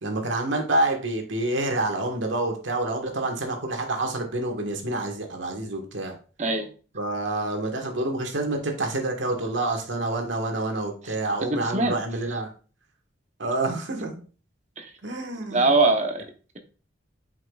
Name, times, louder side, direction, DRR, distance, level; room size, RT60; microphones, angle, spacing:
voice 1, 0.0-6.1 6.9-12.5 13.4-14.2 15.0-15.7, right 2 dB, 75° right, 2 dB, 1.5 m, -28 dB
voice 2, 11.6-11.9 14.8-14.9 15.5-16.2, right 3 dB, 40° right, 5 dB, 0.9 m, -22 dB
8.1 x 5.6 x 2.4 m, 0.38 s
head